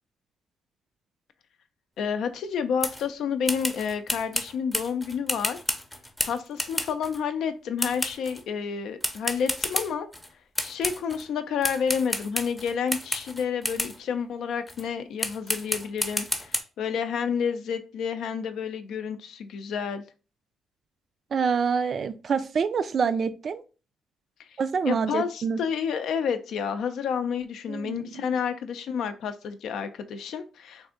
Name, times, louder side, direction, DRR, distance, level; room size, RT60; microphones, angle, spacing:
voice 1, 2.0-5.6 6.2-10.1 10.6-20.0 24.4-24.5 24.8-30.9, left 7 dB, 75° left, 9 dB, 0.4 m, -30 dB
sound 1, 2.8-3.1 3.5-7.2 7.8-8.4 9.0-10.3 10.6-11.2 11.6-14.0 14.7-14.8 15.2-16.6, equal, 5° left, 0.6 m, -31 dB
voice 2, 21.3-23.6 24.6-25.6 27.7-28.3, right 6 dB, 50° right, 12 dB, 0.3 m, -26 dB
3.3 x 2.5 x 3.7 m, 0.34 s
cardioid pair, 90°, 0 cm